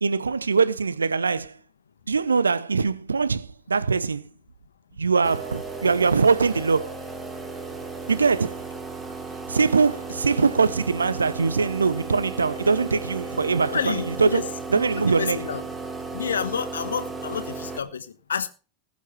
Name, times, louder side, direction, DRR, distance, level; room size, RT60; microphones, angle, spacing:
voice 1, 0.0-1.5 2.1-4.2 5.0-7.0 8.1-8.6 9.5-15.4, right 4 dB, 75° right, 0.9 m, -22 dB
sound 1, 5.2-17.8, right 3 dB, 15° right, 2.7 m, -35 dB
voice 2, 13.6-14.5 14.7-15.6 16.1-18.5, left 7 dB, 70° left, 1.5 m, -29 dB
20.0 x 7.3 x 4.4 m
figure-of-eight pair, 90°, 0 cm